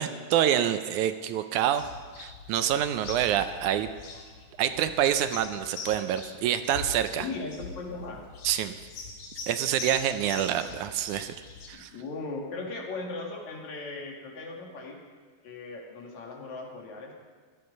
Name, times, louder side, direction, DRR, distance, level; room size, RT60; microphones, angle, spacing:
voice 1, 0.0-1.8 2.2-3.9 4.6-7.3 8.4-8.7 9.5-11.4 11.7-11.9, right 10 dB, 80° right, 10 dB, 2.0 m, -27 dB
sound 1, 1.7-11.7, left 4 dB, 80° left, 3.4 m, -42 dB
voice 2, 7.2-8.2 11.7-15.0 15.4-17.1, left 3 dB, 65° left, -1 dB, 3.4 m, -38 dB
16.5 x 12.5 x 5.3 m, 1.5 s
omnidirectional pair, 3.6 m